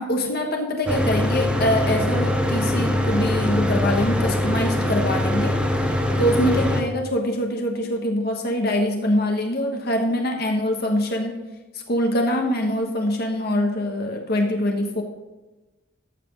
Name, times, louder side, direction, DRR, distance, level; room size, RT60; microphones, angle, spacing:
voice 1, 0.0-11.4 11.9-15.0, left 1 dB, 55° left, 3 dB, 1.3 m, -24 dB
Mechanical fan, 0.9-6.8, left 1 dB, 5° right, 1.3 m, -22 dB
13.5 x 5.9 x 6.1 m, 1.1 s
head